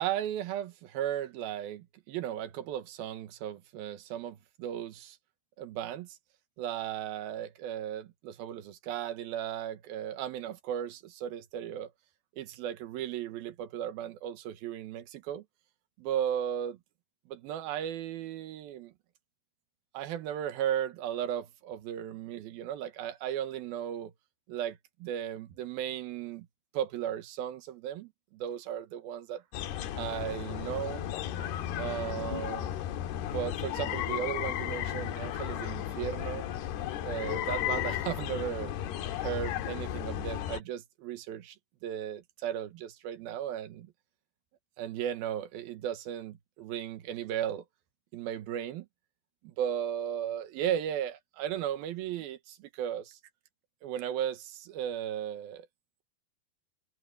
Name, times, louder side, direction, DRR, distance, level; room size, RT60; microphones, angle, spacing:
voice 1, 0.0-5.2 5.6-6.2 6.6-11.9 12.4-15.4 16.0-16.8 17.3-18.9 19.9-24.1 24.5-26.5 26.7-29.4 29.9-31.1 31.8-32.7 33.3-36.4 36.9-38.7 39.2-41.6 41.8-43.9 44.8-47.6 48.1-48.9 49.4-53.2 53.8-55.7, right 10 dB, 75° right, 2.9 m, -36 dB
sound 1, 29.5-40.6, left 11 dB, 80° left, 3.2 m, -34 dB
omnidirectional pair, 4.7 m